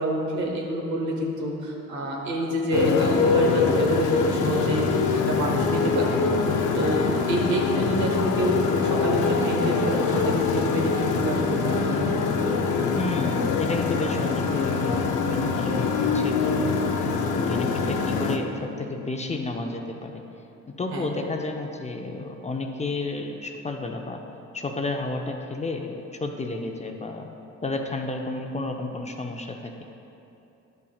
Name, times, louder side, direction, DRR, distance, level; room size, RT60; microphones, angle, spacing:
voice 1, 0.0-6.1 6.7-7.0 7.3-11.9 20.9-21.0, right 1 dB, 75° right, -1 dB, 1.3 m, -27 dB
Motorcycle, 2.7-18.4, left 4 dB, 85° left, 0.6 m, -24 dB
voice 2, 13.0-16.8 17.3-20.2 20.8-24.2 24.5-27.3 27.6-29.7, left 2 dB, 25° left, 3 dB, 0.5 m, -31 dB
10.5 x 5.7 x 2.4 m, 2.8 s
cardioid pair, 90°, 30 cm